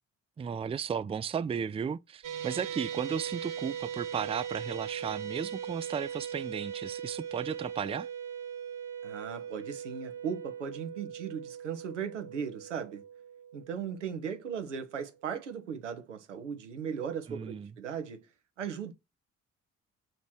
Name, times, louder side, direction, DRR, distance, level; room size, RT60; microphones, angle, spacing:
voice 1, 0.4-8.1 17.3-17.7, right 7 dB, 15° right, 0.4 m, -35 dB
sound 1, 2.2-14.6, right 8 dB, 60° right, 1.5 m, -40 dB
voice 2, 9.0-13.0 13.5-18.3 18.6-18.9, right 7 dB, 90° right, 0.8 m, -37 dB
7.5 x 3.0 x 6.1 m
figure-of-eight pair, 45°, 36 cm